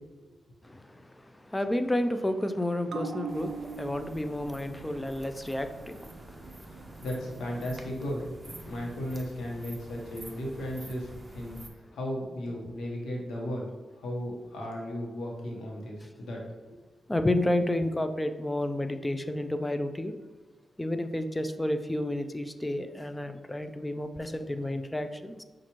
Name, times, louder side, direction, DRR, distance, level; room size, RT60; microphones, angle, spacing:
voice 1, 0.6-7.0 8.6-8.7 17.1-20.1 20.8-25.4, left 1 dB, 15° left, 0.3 m, -31 dB
sound 1, 2.9-9.8 10.1-10.2, right 5 dB, 70° right, 0.3 m, -44 dB
sound 2, 3.3-11.7, right 1 dB, 30° right, 0.6 m, -48 dB
voice 2, 6.7-8.3 8.6-11.1 11.3-11.6 11.9-13.7 14.0-16.4, equal, 85° left, 1.0 m, -35 dB
5.7 x 2.5 x 2.9 m
cardioid pair, 65°, 0 cm